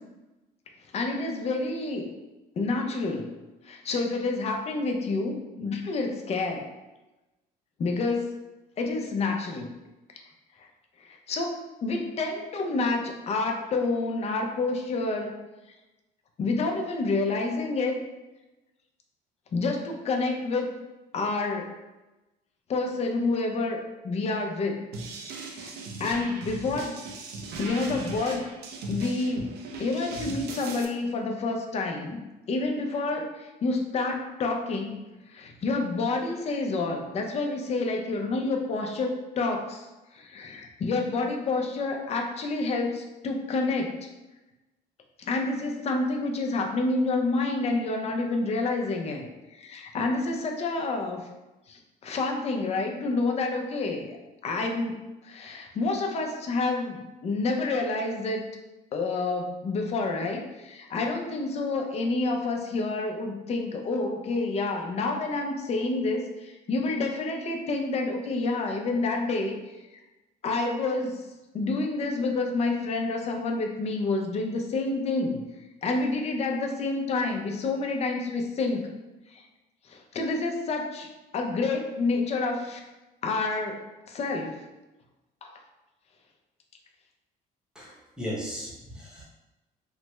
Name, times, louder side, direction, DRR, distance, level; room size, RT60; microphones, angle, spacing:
voice 1, 0.9-2.1 2.6-3.3 3.6-6.7 7.8-8.4 8.8-9.7 10.1-10.2 10.6-10.7 11.0-11.5 11.8-15.3 16.4-18.0 19.5-20.7 21.1-21.7 22.7-23.8 24.0-24.8 25.5-25.7 26.0-26.9 27.6-28.4 28.9-29.5 29.8-32.2 32.5-34.9 35.3-39.9 40.1-44.1 45.2-49.3 49.5-51.3 51.7-54.2 54.4-55.0 55.2-58.4 58.9-69.6 69.9-70.0 70.4-71.3 71.5-75.4 75.8-78.8 79.3-79.4 79.8-82.8 83.2-84.6 85.4-85.5, left 3 dB, 40° left, 2 dB, 0.5 m, -28 dB
sound 1, 24.9-30.8, right 3 dB, 70° right, 0.5 m, -38 dB
voice 2, 87.8-89.2, equal, 5° right, -4 dB, 0.9 m, -36 dB
3.3 x 2.0 x 3.0 m, 1.1 s
cardioid pair, 110°, 17 cm